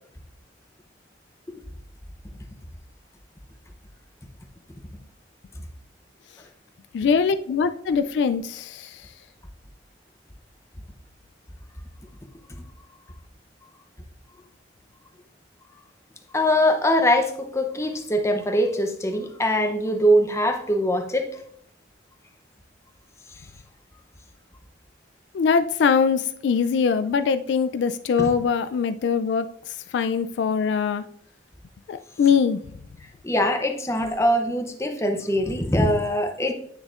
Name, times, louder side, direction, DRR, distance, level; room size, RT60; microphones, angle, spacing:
voice 1, 6.9-9.1 25.3-31.0 31.9-32.6, left 6 dB, 70° left, 11 dB, 0.3 m, -22 dB
voice 2, 16.3-21.3 28.2-28.3 33.2-36.5, equal, 15° left, 5 dB, 0.7 m, -22 dB
9.3 x 6.2 x 2.5 m, 0.65 s
head